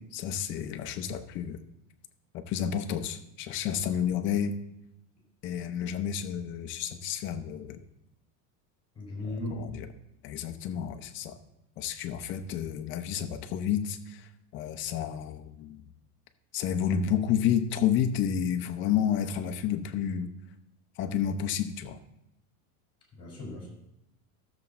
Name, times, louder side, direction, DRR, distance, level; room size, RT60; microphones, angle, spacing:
voice 1, 0.1-1.6 2.3-4.6 5.4-7.8 9.6-9.8 10.2-11.4 11.8-15.8 16.5-20.3 21.0-22.0, left 8 dB, 25° left, 7 dB, 0.5 m, -30 dB
voice 2, 8.9-9.6 23.1-23.7, left 2 dB, 10° left, -2 dB, 4.6 m, -37 dB
13.0 x 7.0 x 4.2 m, 0.85 s
supercardioid pair, 160°, 47 cm